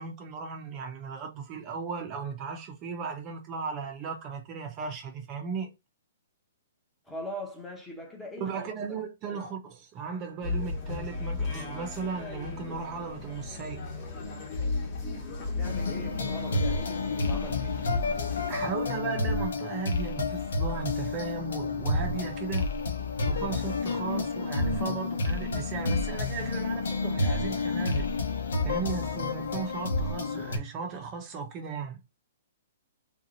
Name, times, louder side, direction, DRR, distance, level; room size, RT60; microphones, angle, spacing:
voice 1, 0.0-5.7 8.4-13.8 18.5-22.7 23.2-28.1 28.6-32.0, right 5 dB, 25° right, 0.6 m, -36 dB
voice 2, 7.1-8.9 9.3-9.4 15.5-17.8, left 1 dB, 5° left, 0.8 m, -41 dB
sound 1, 10.4-18.7, left 3 dB, 30° left, 1.2 m, -35 dB
sound 2, 15.6-30.6, left 3 dB, 80° left, 1.1 m, -30 dB
3.6 x 2.8 x 2.5 m
hypercardioid pair, 160°, 0 cm